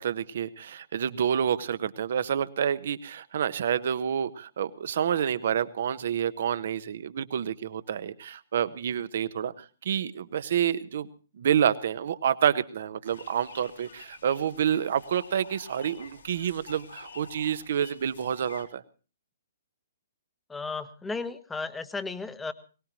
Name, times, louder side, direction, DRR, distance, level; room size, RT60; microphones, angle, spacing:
voice 1, 0.0-11.1 11.3-18.8, right 9 dB, 55° right, 13 dB, 1.1 m, -28 dB
sound 1, 13.0-18.6, left 4 dB, 75° left, 4.3 m, -48 dB
voice 2, 20.5-22.5, left 4 dB, 10° left, 11 dB, 1.2 m, -34 dB
22.5 x 18.5 x 3.0 m, 0.36 s
figure-of-eight pair, 125°, 0 cm